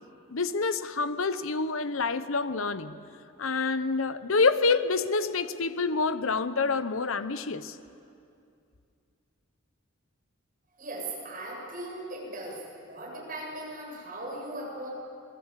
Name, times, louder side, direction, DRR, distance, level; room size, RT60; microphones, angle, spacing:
voice 1, 0.3-3.0 3.4-7.8, left 4 dB, 75° left, 12 dB, 0.9 m, -27 dB
voice 2, 10.8-12.6 12.9-14.9, right 1 dB, 40° right, -3 dB, 7.5 m, -38 dB
27.0 x 19.0 x 8.2 m, 2.5 s
head